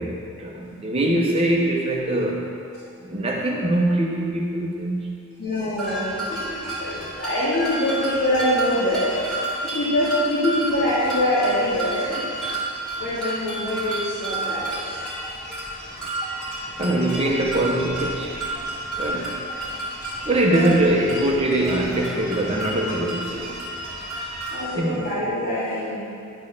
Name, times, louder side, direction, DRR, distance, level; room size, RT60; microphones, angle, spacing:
voice 1, 0.0-2.5 3.0-5.2 16.8-18.5 19.0-19.4 20.3-23.6 24.7-25.1, right 1 dB, 25° right, -1 dB, 0.9 m, -23 dB
voice 2, 5.4-12.2 13.0-15.0 15.8-16.0 20.5-20.7 24.5-26.0, left 1 dB, 40° left, -14 dB, 2.8 m, -24 dB
sound 1, 5.8-24.7, right 1 dB, 5° left, 2.9 m, -31 dB
11.0 x 6.5 x 6.5 m, 2.4 s
head